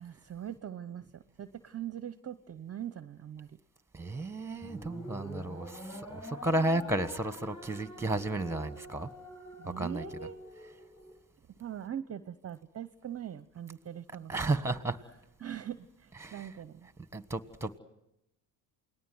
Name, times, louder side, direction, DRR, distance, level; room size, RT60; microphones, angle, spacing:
voice 1, 0.0-3.6 9.6-10.4 11.6-14.6 15.4-16.9, right 10 dB, 30° right, 13 dB, 0.8 m, -42 dB
voice 2, 3.9-9.1 9.8-10.0 14.3-15.0 16.2-16.5 17.1-17.8, right 2 dB, 5° right, 12 dB, 1.6 m, -33 dB
sound 1, 4.6-11.1, left 1 dB, 10° left, 6.3 m, -46 dB
28.5 x 19.5 x 7.9 m, 0.87 s
supercardioid pair, 80°, 47 cm